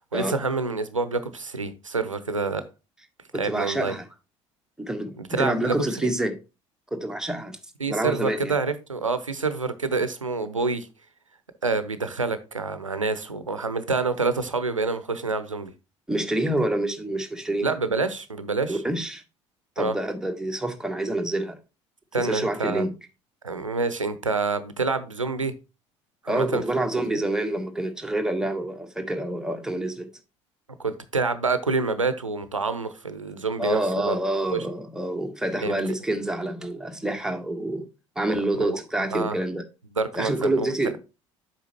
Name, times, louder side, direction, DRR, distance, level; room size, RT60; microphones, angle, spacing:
voice 1, 0.1-2.6 3.3-3.9 5.2-5.8 6.0-6.1 7.8-10.9 11.6-15.7 17.6-18.8 19.8-19.9 22.1-22.9 23.4-25.5 26.2-26.6 27.1-27.2 30.8-34.2 34.5-34.7 35.6-35.7 38.6-38.8 39.1-39.4 39.9-40.7, right 3 dB, 85° right, 0.7 m, -27 dB
voice 2, 3.3-4.0 4.8-6.4 6.9-7.6 7.9-8.5 16.1-17.7 18.7-19.2 19.8-21.6 22.2-22.9 26.3-30.1 33.6-37.9 38.1-39.6 40.1-40.9, right 1 dB, 5° right, 1.4 m, -27 dB
8.2 x 6.1 x 3.0 m
figure-of-eight pair, 60°, 16 cm